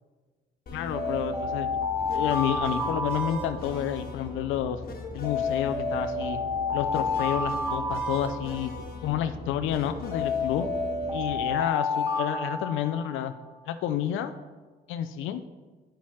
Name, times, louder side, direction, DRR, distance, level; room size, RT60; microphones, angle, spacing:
voice 1, 0.7-1.7 2.1-4.8 5.1-6.4 6.7-8.7 9.0-10.7 11.1-13.3 13.7-14.3 14.9-15.4, left 10 dB, 90° left, 9 dB, 0.4 m, -30 dB
sound 1, 0.7-11.4, left 2 dB, 50° left, 1.3 m, -39 dB
sound 2, 0.9-4.1 5.2-9.0 10.1-13.3, left 3 dB, 25° right, 1.7 m, -30 dB
10.0 x 5.7 x 3.1 m, 1.3 s
cardioid pair, 90°, 20 cm